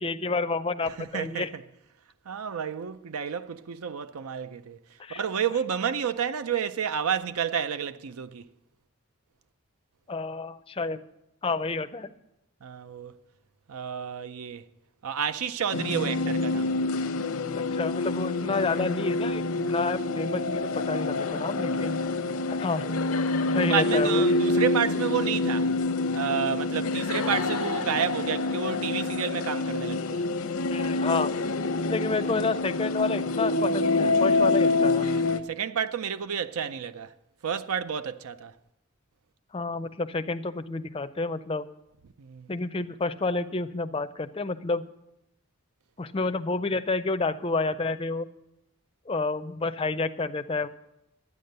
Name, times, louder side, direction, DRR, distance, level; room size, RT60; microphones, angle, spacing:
voice 1, 0.0-1.5 5.0-5.2 10.1-11.0 11.4-12.1 17.6-22.0 22.5-22.8 23.5-24.2 30.7-31.3 31.9-35.1 39.5-41.7 42.5-44.9 46.0-48.3 49.1-50.7, left 3 dB, 25° left, 0.4 m, -29 dB
voice 2, 1.0-1.6 2.3-4.8 5.1-8.5 12.6-13.2 13.7-14.6 15.0-16.7 21.6-21.9 23.5-25.7 26.1-30.3 34.9-37.1 37.4-38.5 42.2-42.5, right 7 dB, 80° right, 0.5 m, -30 dB
sound 1, 15.7-35.4, left 3 dB, 80° left, 0.8 m, -27 dB
12.0 x 9.3 x 6.6 m
head